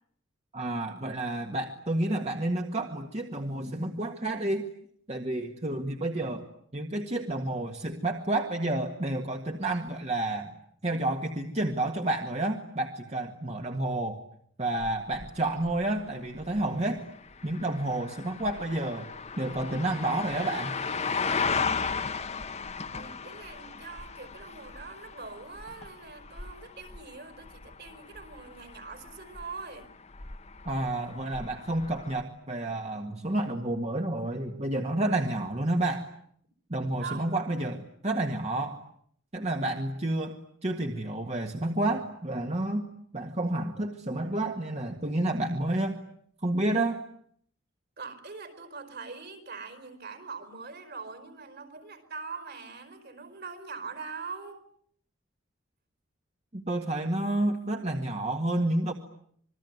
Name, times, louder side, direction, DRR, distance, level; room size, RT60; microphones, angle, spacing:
voice 1, 0.5-4.6 5.1-6.4 6.7-10.5 10.8-14.2 14.6-17.0 17.4-19.1 19.4-20.8 30.7-36.1 36.7-38.8 39.3-42.9 43.1-46.0 46.4-47.0 56.5-58.9, right 1 dB, 35° right, 4 dB, 1.8 m, -30 dB
sound 1, 14.8-32.2, left 5 dB, 35° left, 1.2 m, -36 dB
voice 2, 22.9-29.9 37.0-37.2 48.0-54.6, right 4 dB, 55° right, 9 dB, 4.9 m, -42 dB
27.0 x 22.0 x 9.6 m, 0.66 s
head